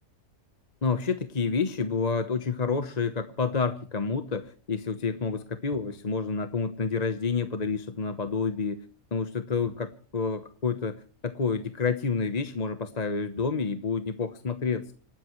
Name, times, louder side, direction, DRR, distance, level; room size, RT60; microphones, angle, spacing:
voice 1, 0.8-8.8 9.1-10.9 11.2-14.9, left 5 dB, 30° left, 9 dB, 1.0 m, -29 dB
27.5 x 13.0 x 3.1 m, 0.41 s
omnidirectional pair, 1.6 m